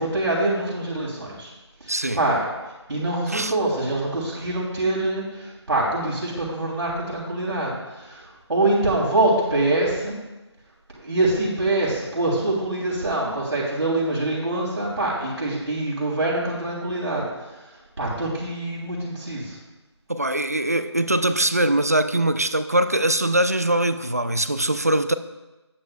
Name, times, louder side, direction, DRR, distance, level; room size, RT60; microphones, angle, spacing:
voice 1, 0.0-1.5 1.8-2.5 2.9-10.1 10.9-19.6, right 2 dB, 75° right, 3.1 m, -25 dB
voice 2, 1.9-2.2 3.3-3.5 20.1-25.1, right 1 dB, 35° right, 0.4 m, -22 dB
17.5 x 7.0 x 2.3 m
figure-of-eight pair, 175°, 15 cm